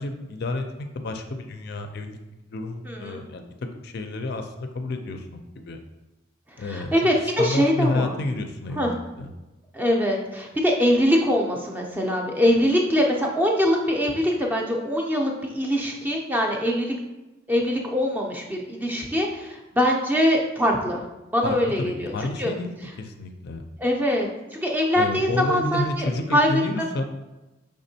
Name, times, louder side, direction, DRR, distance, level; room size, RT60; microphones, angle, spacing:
voice 1, 0.0-2.2 2.5-3.5 3.8-5.8 6.6-6.9 7.4-9.3 21.4-23.6 25.0-27.0, left 2 dB, 50° left, 6 dB, 0.4 m, -30 dB
voice 2, 2.8-3.2 6.6-8.2 8.8-8.9 9.7-16.9 17.5-21.0 21.3-22.1 22.4-22.5 23.8-26.5, equal, 10° right, 0 dB, 0.4 m, -23 dB
5.1 x 3.6 x 2.7 m, 1.0 s
head